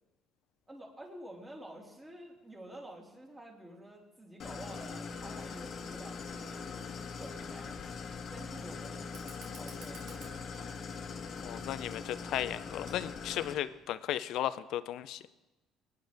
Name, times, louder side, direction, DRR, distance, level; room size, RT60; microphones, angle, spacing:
voice 1, 0.7-7.8 8.3-10.7, right 1 dB, 15° right, -1 dB, 3.1 m, -50 dB
Idling, 4.4-13.5, left 5 dB, 50° left, 1.4 m, -42 dB
Fire, 9.1-14.0, right 4 dB, 80° right, 2.5 m, -57 dB
voice 2, 11.4-15.2, left 12 dB, 70° left, 14 dB, 0.5 m, -35 dB
21.0 x 9.7 x 3.5 m, 1.1 s
supercardioid pair, 90°, 0 cm